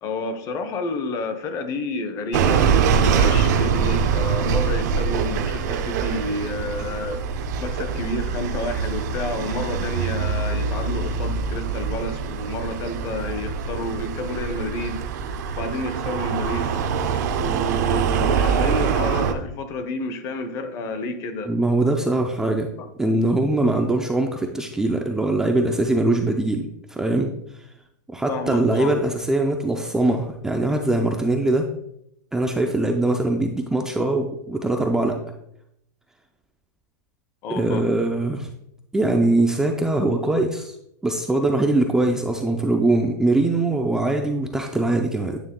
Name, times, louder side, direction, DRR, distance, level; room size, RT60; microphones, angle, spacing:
voice 1, 0.0-15.0 15.6-16.7 17.4-21.5 22.8-22.9 28.3-28.9 37.4-37.8, left 2 dB, 30° left, 9 dB, 0.7 m, -30 dB
sound 1, 2.3-19.3, right 6 dB, 65° right, 0.6 m, -24 dB
voice 2, 21.5-22.7 23.0-27.3 28.1-31.7 32.3-35.2 37.5-38.5 38.9-40.7 41.0-45.4, right 2 dB, 5° right, 2 dB, 0.4 m, -22 dB
8.9 x 3.2 x 3.6 m, 0.76 s
supercardioid pair, 150°, 10 cm